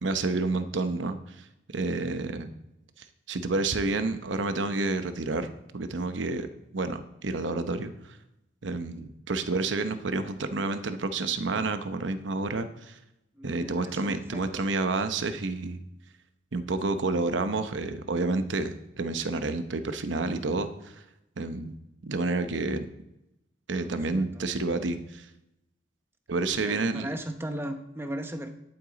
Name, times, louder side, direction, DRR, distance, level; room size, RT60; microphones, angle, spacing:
voice 1, 0.0-1.5 1.7-2.5 3.0-6.5 6.7-8.2 8.6-13.0 13.4-15.8 16.5-20.9 21.4-21.8 22.0-22.9 23.7-25.3 26.3-27.1, right 3 dB, 80° right, 9 dB, 0.8 m, -29 dB
voice 2, 13.3-14.7 23.7-24.6 26.5-28.5, right 1 dB, 10° right, 7 dB, 0.7 m, -38 dB
11.0 x 8.7 x 4.0 m, 0.90 s
head